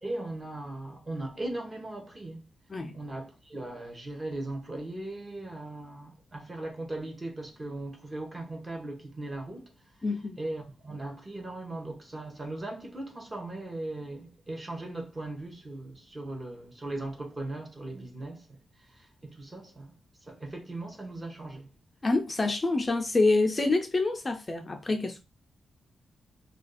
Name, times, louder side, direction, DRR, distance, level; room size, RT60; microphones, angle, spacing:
voice 1, 0.0-2.4 2.9-9.7 10.4-19.9 20.2-21.7, right 2 dB, 20° right, 0.8 m, -38 dB
voice 2, 10.0-10.4 22.0-25.2, left 3 dB, 25° left, 0.4 m, -26 dB
2.5 x 2.3 x 4.0 m
cardioid pair, 120°, 0 cm